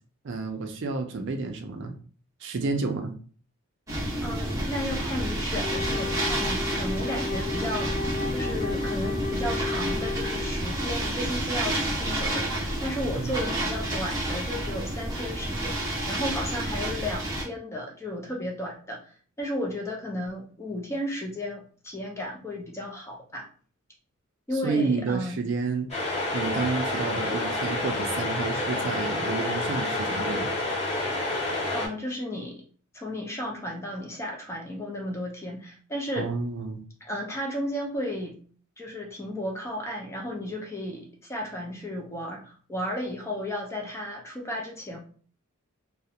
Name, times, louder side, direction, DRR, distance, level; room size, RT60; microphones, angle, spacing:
voice 1, 0.2-1.9 2.4-3.1 13.1-13.4 24.6-25.9 26.3-30.5 36.1-36.8, right 4 dB, 55° right, 5 dB, 0.4 m, -30 dB
sound 1, 3.9-17.4, right 1 dB, 15° right, 0.8 m, -30 dB
voice 2, 4.2-7.9 8.3-19.0 19.4-23.5 24.5-25.4 31.7-32.6 32.9-36.3 37.0-38.4 38.8-45.0, left 1 dB, 15° left, 0 dB, 0.4 m, -34 dB
Wind instrument woodwind instrument, 5.6-10.7, left 4 dB, 80° left, 0.6 m, -34 dB
sound 2, 25.9-31.9, left 2 dB, 30° left, 0.8 m, -29 dB
2.4 x 2.0 x 2.7 m, 0.43 s
head